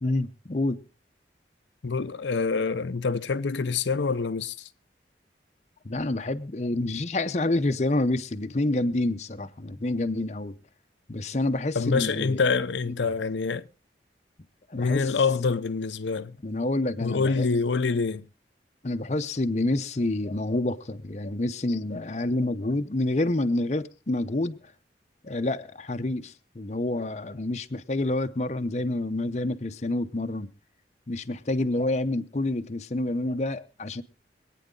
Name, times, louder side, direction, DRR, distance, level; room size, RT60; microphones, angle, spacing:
voice 1, 0.0-0.8 5.8-10.5 11.1-12.5 12.9-13.0 14.7-15.1 16.4-17.5 18.8-24.6 25.2-30.5 31.1-34.0, left 2 dB, 40° left, 0.7 m, -28 dB
voice 2, 1.8-4.7 11.7-13.7 14.8-16.4 17.0-18.3, left 4 dB, 80° left, 0.6 m, -26 dB
24.5 x 9.3 x 3.8 m
head